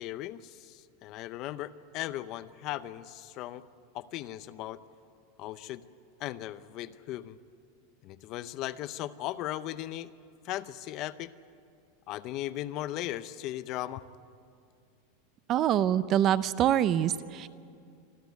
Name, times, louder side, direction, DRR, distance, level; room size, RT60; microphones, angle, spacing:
voice 1, 0.0-3.6 3.9-4.8 5.4-5.8 6.2-7.4 8.0-10.1 10.4-11.3 12.1-14.0, left 14 dB, 35° left, 14 dB, 0.6 m, -37 dB
voice 2, 15.5-17.5, right 10 dB, 30° right, 15 dB, 0.5 m, -25 dB
26.5 x 13.5 x 9.4 m, 2.3 s
supercardioid pair, 165°, 0 cm